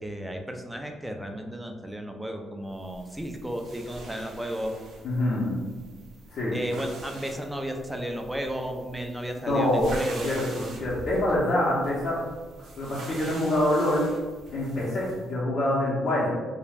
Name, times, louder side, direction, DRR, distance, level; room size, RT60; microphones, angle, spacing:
voice 1, 0.0-4.7 6.5-10.4 13.1-13.2, equal, 10° right, 3 dB, 0.3 m, -34 dB
sound 1, 2.8-15.3, right 2 dB, 70° right, 0.5 m, -44 dB
voice 2, 5.0-5.6 6.3-6.5 9.5-9.9 10.2-10.5 10.8-12.2 12.8-14.1 14.5-16.3, left 1 dB, 55° left, -8 dB, 0.6 m, -25 dB
2.3 x 2.0 x 3.3 m, 1.4 s
cardioid pair, 90°, 0 cm